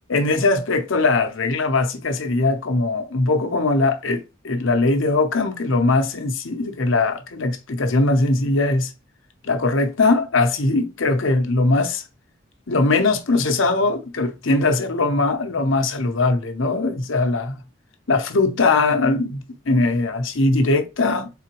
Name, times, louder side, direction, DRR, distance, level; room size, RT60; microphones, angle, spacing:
voice 1, 0.1-8.9 9.4-12.0 12.7-17.6 18.1-21.3, left 3 dB, 75° left, 0.8 m, -20 dB
3.9 x 3.7 x 3.0 m
head